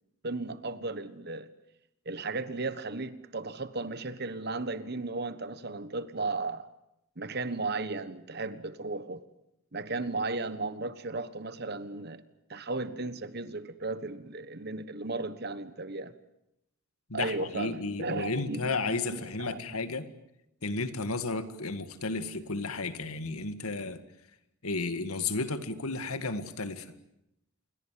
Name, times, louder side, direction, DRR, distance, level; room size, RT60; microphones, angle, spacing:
voice 1, 0.2-1.5 2.0-6.7 7.2-9.2 9.7-12.2 12.5-16.1 17.1-18.7 19.1-19.6, right 3 dB, 45° right, 1.3 m, -35 dB
voice 2, 17.1-20.1 20.6-24.0 24.6-26.9, left 3 dB, 85° left, 2.0 m, -33 dB
28.0 x 22.5 x 7.6 m
head